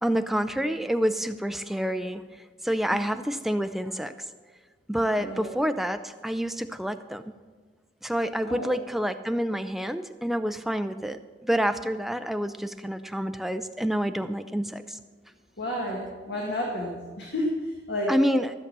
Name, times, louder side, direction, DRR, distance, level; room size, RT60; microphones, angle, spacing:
voice 1, 0.0-2.2 2.6-4.1 4.9-7.2 8.0-15.0 18.1-18.5, equal, ahead, 9 dB, 0.3 m, -28 dB
voice 2, 5.2-5.5 8.4-8.7 15.6-18.1, left 1 dB, 65° left, -2 dB, 1.9 m, -31 dB
13.5 x 7.2 x 6.7 m, 1.4 s
head